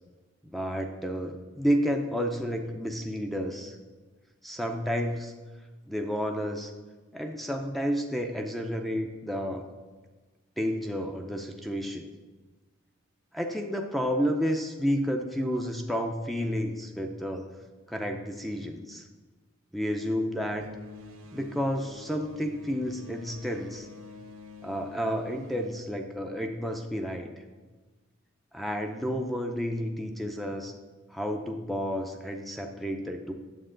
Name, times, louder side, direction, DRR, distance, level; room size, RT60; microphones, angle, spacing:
voice 1, 0.5-3.7 4.4-5.3 5.9-6.7 7.1-9.7 10.6-12.0 13.3-17.5 17.9-19.0 19.7-20.7 21.3-23.9 24.6-27.3 28.5-30.7 31.1-33.3, equal, ahead, 3 dB, 0.5 m, -31 dB
sound 1, 20.6-26.6, left 3 dB, 90° right, 1.2 m, -48 dB
8.8 x 7.2 x 3.8 m, 1.3 s
head